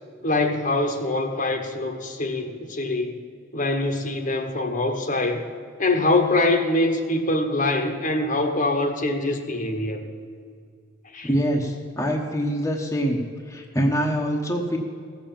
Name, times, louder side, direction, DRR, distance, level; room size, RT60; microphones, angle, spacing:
voice 1, 0.2-3.2 3.5-5.4 5.8-10.0 11.1-11.3, left 2 dB, 40° left, 5 dB, 1.2 m, -24 dB
voice 2, 11.2-13.2 13.4-14.8, equal, 15° left, 0 dB, 1.0 m, -24 dB
16.0 x 7.1 x 7.5 m, 2.2 s
head